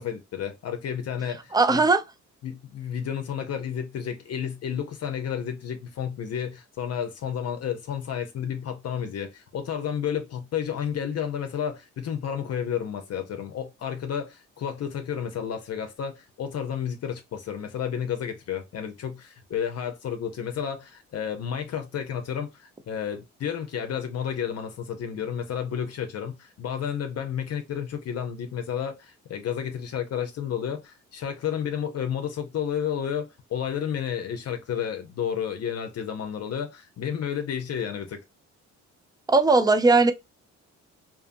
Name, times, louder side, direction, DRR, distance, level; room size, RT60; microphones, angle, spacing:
voice 1, 0.0-1.8 2.4-38.2, left 8 dB, 55° left, 0.6 m, -31 dB
voice 2, 1.5-2.0 39.3-40.1, right 3 dB, 15° right, 0.4 m, -18 dB
2.6 x 2.5 x 2.5 m
cardioid pair, 90°, 30 cm